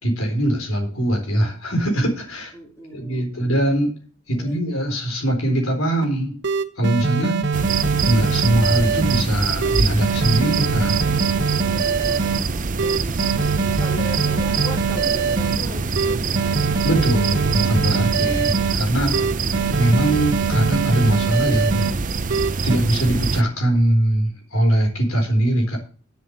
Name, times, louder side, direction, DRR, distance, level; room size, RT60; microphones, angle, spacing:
voice 1, 0.0-2.5 2.9-3.9 4.3-6.3 6.8-7.4 8.0-11.0 16.8-19.1 19.7-21.8 22.6-25.8, right 1 dB, 75° left, 2 dB, 4.1 m, -21 dB
voice 2, 2.5-3.3 4.3-4.6 11.6-16.6, left 1 dB, 15° left, -1 dB, 2.7 m, -38 dB
sound 1, 6.0-6.1 6.4-9.2 9.6-12.4 12.8-15.6 16.0-18.7 19.1-21.9 22.3-22.8, right 5 dB, 55° right, 1.0 m, -23 dB
sound 2, 7.5-23.4, right 4 dB, 40° right, 0.6 m, -25 dB
7.5 x 7.4 x 7.9 m, 0.40 s
head